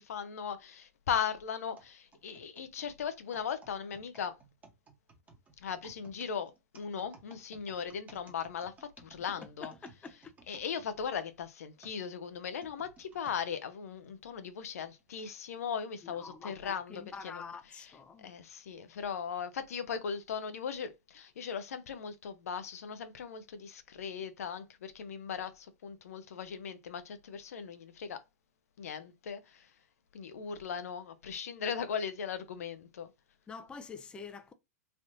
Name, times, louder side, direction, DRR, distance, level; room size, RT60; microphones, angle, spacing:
voice 1, 0.0-4.3 5.6-9.7 10.5-17.5 17.8-17.9 18.2-28.2 28.8-29.7 30.1-33.1, left 7 dB, 65° left, 0.6 m, -38 dB
sound 1, 1.8-11.3 11.8-13.4 14.0-14.1 15.0-15.2, right 3 dB, 15° right, 0.9 m, -58 dB
voice 2, 9.4-10.3 16.0-18.3 33.5-34.5, left 5 dB, 10° left, 0.4 m, -46 dB
3.3 x 2.6 x 2.6 m
hypercardioid pair, 110°, 9 cm